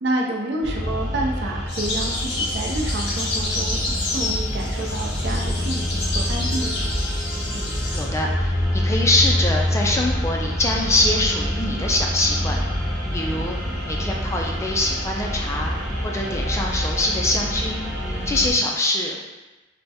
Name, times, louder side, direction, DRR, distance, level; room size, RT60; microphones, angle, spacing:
voice 1, 0.0-3.8 4.1-6.7, right 2 dB, 60° right, -1 dB, 0.6 m, -28 dB
sound 1, 0.6-18.5, equal, 5° right, 0.8 m, -26 dB
sound 2, 1.7-8.1, left 2 dB, 65° left, 0.9 m, -29 dB
voice 2, 7.5-12.6 13.1-13.6 13.8-15.7 16.0-17.8 18.3-19.3, left 2 dB, 15° left, 0 dB, 0.3 m, -24 dB
3.3 x 2.2 x 4.1 m, 1.1 s
head